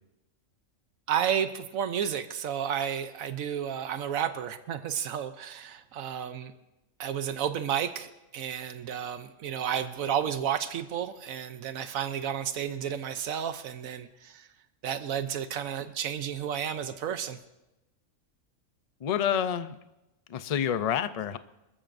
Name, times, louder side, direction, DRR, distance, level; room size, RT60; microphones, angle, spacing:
voice 1, 1.1-6.5 7.0-14.5 14.8-17.4, right 9 dB, 85° right, 10 dB, 1.1 m, -32 dB
voice 2, 19.0-19.8 20.3-21.4, left 9 dB, 50° left, 12 dB, 0.4 m, -28 dB
26.5 x 14.0 x 2.6 m, 0.96 s
omnidirectional pair, 1.4 m